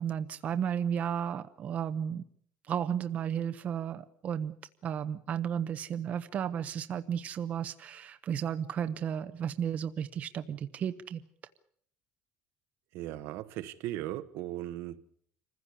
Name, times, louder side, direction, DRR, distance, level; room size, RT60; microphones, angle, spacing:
voice 1, 0.0-2.2 2.7-4.5 4.8-11.2, right 8 dB, 35° right, 0.9 m, -33 dB
voice 2, 12.9-15.1, right 14 dB, 75° right, 1.2 m, -38 dB
26.0 x 15.5 x 8.4 m
cardioid pair, 170°, 4 cm